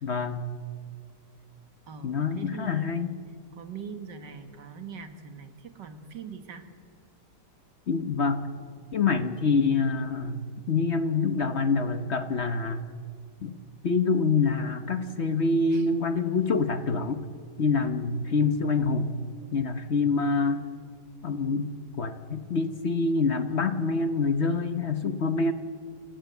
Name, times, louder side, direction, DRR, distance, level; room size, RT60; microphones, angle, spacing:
voice 1, 0.0-0.5 2.0-3.2 7.9-8.5 8.9-12.8 13.4-13.6 13.8-17.2 17.6-19.1 19.5-20.7 21.2-21.7 22.0-25.5, left 4 dB, 45° left, 10 dB, 1.1 m, -26 dB
voice 2, 1.9-3.0 3.5-6.7 15.7-15.9, right 6 dB, 85° right, 8 dB, 2.2 m, -42 dB
28.0 x 17.0 x 8.1 m, 2.1 s
omnidirectional pair, 1.8 m